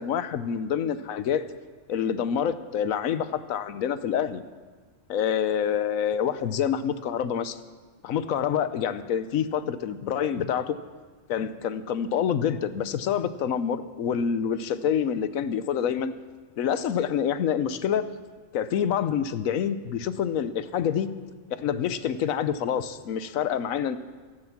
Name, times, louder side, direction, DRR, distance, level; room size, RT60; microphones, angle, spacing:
voice 1, 0.0-1.4 1.9-4.4 5.1-7.6 8.0-10.8 11.3-16.1 16.6-18.1 18.5-21.1 21.6-24.0, left 8 dB, 85° left, 13 dB, 1.2 m, -27 dB
16.0 x 12.0 x 5.9 m, 1.4 s
omnidirectional pair, 1.4 m